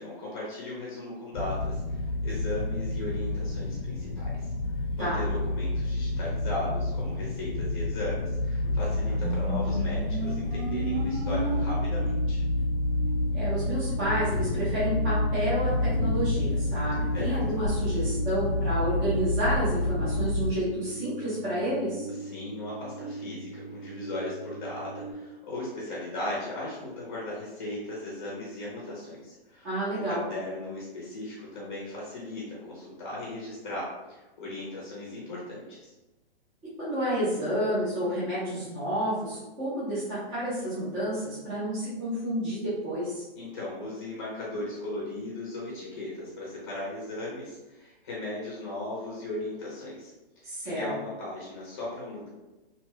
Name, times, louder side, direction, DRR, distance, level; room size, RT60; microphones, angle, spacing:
voice 1, 0.0-12.4 17.1-17.6 22.2-35.9 43.4-50.1 50.4-52.3, left 1 dB, 25° left, -6 dB, 0.7 m, -37 dB
sound 1, 1.3-20.5, left 2 dB, 80° left, 0.6 m, -29 dB
sound 2, 9.2-25.1, right 3 dB, 55° right, 0.8 m, -38 dB
voice 2, 13.3-22.1 29.6-30.2 36.8-43.2 50.4-50.9, equal, 15° right, -11 dB, 0.6 m, -30 dB
2.7 x 2.2 x 3.0 m, 1.1 s
hypercardioid pair, 175°, 30 cm